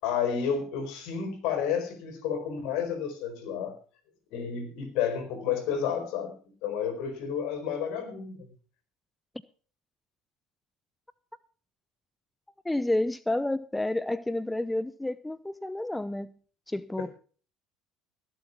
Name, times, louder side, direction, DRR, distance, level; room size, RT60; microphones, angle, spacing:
voice 1, 0.0-3.8 4.3-6.3 6.6-8.5, left 7 dB, 65° left, 8 dB, 4.5 m, -31 dB
voice 2, 12.6-16.3 16.7-17.1, left 1 dB, 10° left, 17 dB, 0.6 m, -30 dB
16.5 x 7.9 x 6.0 m, 0.41 s
hypercardioid pair, 70°, 0 cm